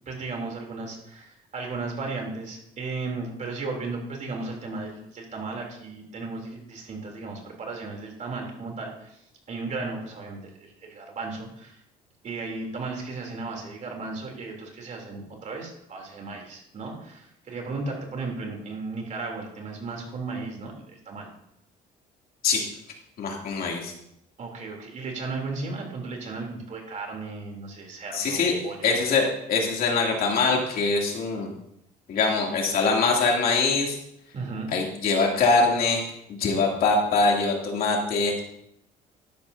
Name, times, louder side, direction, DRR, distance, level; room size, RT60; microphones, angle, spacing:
voice 1, 0.0-9.2 9.5-11.8 12.2-21.3 24.4-29.0 34.3-34.7, right 3 dB, 45° right, 1 dB, 3.3 m, -35 dB
voice 2, 23.2-23.9 28.1-28.5 28.8-31.5 32.1-34.0 34.7-36.0 36.4-38.4, left 4 dB, 60° left, -1 dB, 2.9 m, -23 dB
13.0 x 10.5 x 2.8 m, 0.77 s
cardioid pair, 110°, 17 cm